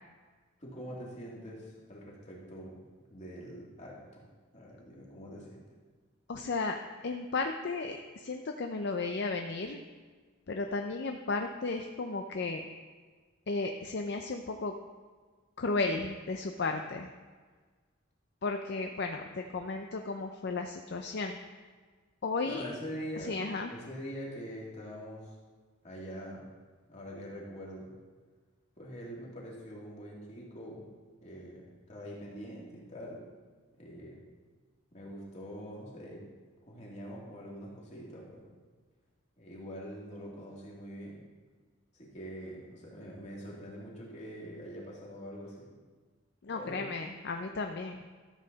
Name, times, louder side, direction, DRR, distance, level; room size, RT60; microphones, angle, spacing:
voice 1, 0.6-2.8 3.1-4.2 4.5-5.6 22.4-23.3 23.7-25.4 25.8-26.5 26.9-27.9 28.8-30.9 31.2-33.2 33.8-34.2 34.9-36.2 36.7-38.5 39.4-41.2 41.9-45.7 46.5-46.9, equal, 35° left, -4 dB, 2.5 m, -44 dB
voice 2, 6.3-6.8 7.0-9.8 10.5-12.7 13.5-14.7 15.6-17.1 18.4-21.4 22.2-22.7 23.2-23.7 46.4-48.0, left 3 dB, 55° left, 5 dB, 0.5 m, -34 dB
13.0 x 7.7 x 4.0 m, 1.4 s
head